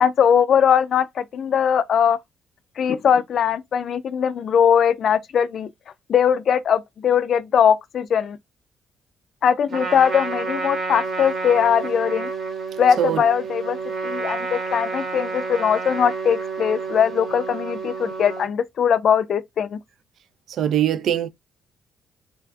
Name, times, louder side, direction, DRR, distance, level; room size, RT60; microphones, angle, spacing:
voice 1, 0.0-2.2 2.8-5.7 6.1-8.4 9.4-12.3 12.8-13.8 14.0-19.8, left 8 dB, 60° left, 0.3 m, -20 dB
Trumpet, 9.7-18.5, right 4 dB, 50° right, 1.1 m, -29 dB
voice 2, 20.5-21.3, right 10 dB, 70° right, 0.3 m, -22 dB
3.2 x 2.4 x 2.2 m
cardioid pair, 90°, 0 cm